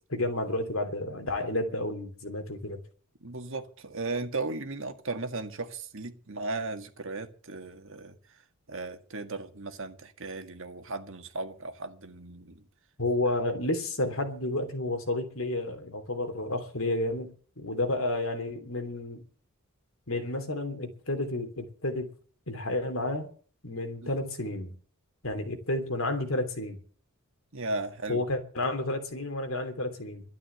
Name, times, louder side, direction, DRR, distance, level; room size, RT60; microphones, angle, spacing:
voice 1, 0.1-2.8 13.0-19.2 20.1-22.1 22.5-23.3 23.6-24.7 25.2-26.8 28.1-30.2, left 2 dB, 65° left, 3.1 m, -31 dB
voice 2, 3.2-8.2 8.7-12.6 24.0-24.1 27.5-28.2, right 3 dB, 60° right, 1.9 m, -36 dB
12.5 x 11.0 x 8.0 m
head